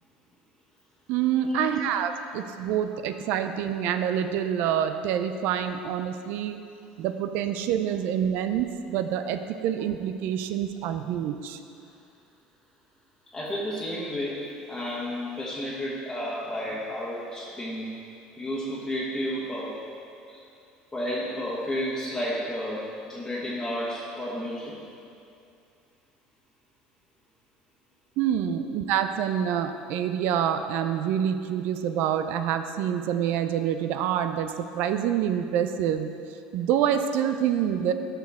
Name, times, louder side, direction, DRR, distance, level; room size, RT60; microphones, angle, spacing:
voice 1, 1.1-6.6 7.0-11.6 28.2-36.2 36.5-37.9, right 9 dB, 65° right, 9 dB, 0.4 m, -27 dB
voice 2, 13.3-18.0 18.4-19.8 20.3-20.4 20.9-24.8 28.4-28.5 37.8-37.9, equal, 15° left, -7 dB, 1.3 m, -32 dB
12.0 x 4.5 x 3.5 m, 2.5 s
supercardioid pair, 85°, 4 cm